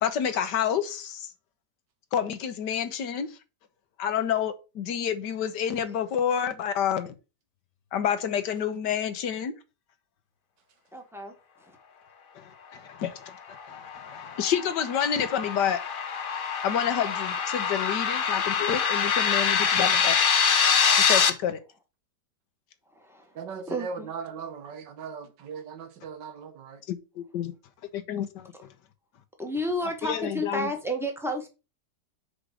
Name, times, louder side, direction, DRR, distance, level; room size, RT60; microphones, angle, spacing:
voice 1, 0.0-1.3 2.1-3.4 4.0-7.1 7.9-9.5 12.3-12.4 12.7-13.2 14.1-15.8 16.6-20.2 21.0-21.6 26.9-27.5 27.9-28.5 30.0-30.7, left 8 dB, 80° left, 1.6 m, -28 dB
voice 2, 10.9-11.3 11.7-11.8 22.9-23.3 23.7-24.1 29.4-31.5, equal, ahead, 1.4 m, -31 dB
sound 1, 13.6-21.3, left 6 dB, 50° left, 0.6 m, -25 dB
voice 3, 23.4-26.8, right 5 dB, 85° right, 1.7 m, -38 dB
5.0 x 5.0 x 6.4 m
omnidirectional pair, 1.8 m